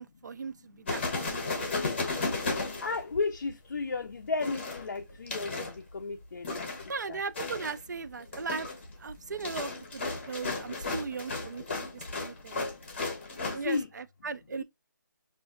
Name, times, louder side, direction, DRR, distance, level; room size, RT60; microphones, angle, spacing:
voice 1, 0.0-1.7 6.9-8.7 9.0-12.6 13.5-14.6, right 4 dB, 60° right, 0.4 m, -38 dB
sound 1, 0.9-3.5 4.4-5.8 6.4-7.0 7.4-7.8 8.2-13.8, left 3 dB, 35° left, 0.8 m, -34 dB
voice 2, 2.8-6.7 7.1-7.2 10.3-10.4 13.6-13.9, left 4 dB, 55° left, 0.4 m, -33 dB
5.0 x 2.5 x 2.4 m
hypercardioid pair, 175°, 11 cm